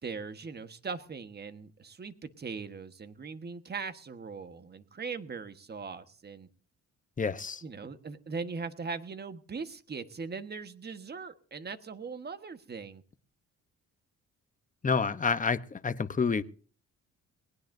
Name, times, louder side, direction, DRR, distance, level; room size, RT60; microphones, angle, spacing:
voice 1, 0.0-6.5 7.6-13.0, right 5 dB, 35° right, 9 dB, 1.5 m, -40 dB
voice 2, 7.2-7.6 14.8-16.4, left 5 dB, 25° left, 11 dB, 1.0 m, -28 dB
20.0 x 18.0 x 2.7 m, 0.42 s
cardioid pair, 90°, 30 cm